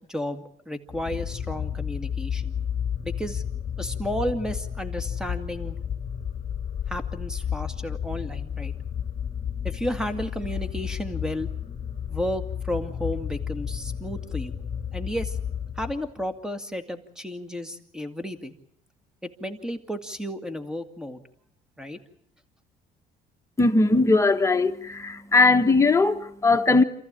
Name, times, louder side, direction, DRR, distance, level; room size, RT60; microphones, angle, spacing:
voice 1, 0.1-2.6 3.0-3.4 3.8-5.8 6.9-8.7 9.6-11.5 12.1-14.6 14.9-15.4 15.8-18.6 19.2-21.2 21.8-22.0, equal, 5° right, 2.2 m, -32 dB
sound 1, 0.9-16.2, left 8 dB, 35° left, 3.4 m, -32 dB
voice 2, 23.6-26.8, left 3 dB, 15° left, 1.5 m, -19 dB
28.0 x 14.5 x 8.9 m
cardioid pair, 110°, 17 cm